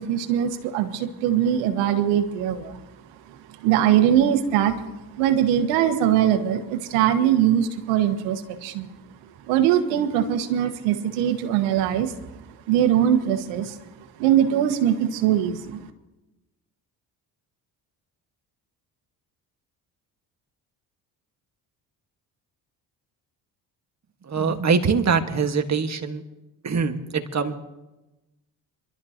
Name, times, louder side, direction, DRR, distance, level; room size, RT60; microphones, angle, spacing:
voice 1, 0.0-2.8 3.6-4.7 5.1-8.9 9.5-12.1 12.7-13.7 14.2-15.8, right 10 dB, 90° right, 7 dB, 1.4 m, -21 dB
voice 2, 24.2-26.2 26.6-27.5, right 5 dB, 35° right, 7 dB, 1.6 m, -23 dB
27.0 x 12.5 x 2.9 m, 1.0 s
supercardioid pair, 65°, 45 cm